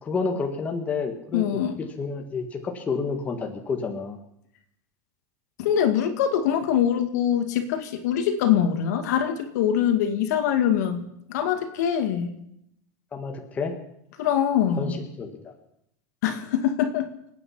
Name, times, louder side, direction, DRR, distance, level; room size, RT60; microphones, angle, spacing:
voice 1, 0.0-4.2 13.1-13.8 14.8-15.6, left 4 dB, 15° left, 3 dB, 1.6 m, -30 dB
voice 2, 1.3-1.7 5.6-12.3 14.2-14.9 16.2-17.1, left 9 dB, 75° left, 6 dB, 2.2 m, -23 dB
27.5 x 9.3 x 5.7 m, 0.77 s
supercardioid pair, 165°, 9 cm